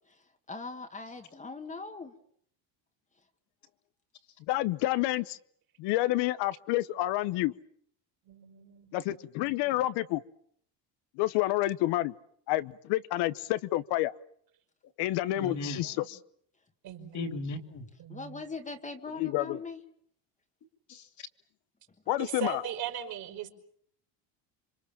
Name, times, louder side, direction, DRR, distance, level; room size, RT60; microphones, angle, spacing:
voice 1, 0.5-2.1 18.1-19.8, left 4 dB, 15° left, 5 dB, 1.7 m, -40 dB
voice 2, 4.5-5.4 5.8-7.5 8.9-10.2 11.2-12.1 12.5-14.1 15.0-15.9 19.2-19.6 22.1-22.6, left 16 dB, 65° left, 14 dB, 1.0 m, -29 dB
voice 3, 8.2-9.3 15.4-16.1 16.8-17.2 18.0-18.4 22.2-23.5, right 10 dB, 55° right, 4 dB, 5.0 m, -40 dB
voice 4, 15.3-15.8 17.1-17.9 20.9-21.3, left 2 dB, 40° left, 8 dB, 2.8 m, -37 dB
27.5 x 25.5 x 7.3 m, 0.67 s
cardioid pair, 140°, 44 cm